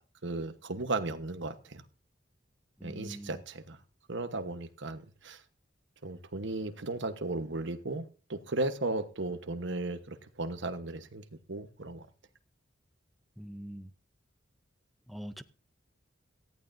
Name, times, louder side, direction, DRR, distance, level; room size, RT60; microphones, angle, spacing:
voice 1, 0.2-1.8 2.8-3.8 4.1-5.4 6.0-12.1, right 2 dB, 70° right, 1.2 m, -36 dB
voice 2, 2.8-3.4 13.4-13.9 15.1-15.4, equal, ahead, 0.6 m, -43 dB
18.0 x 14.0 x 2.7 m
head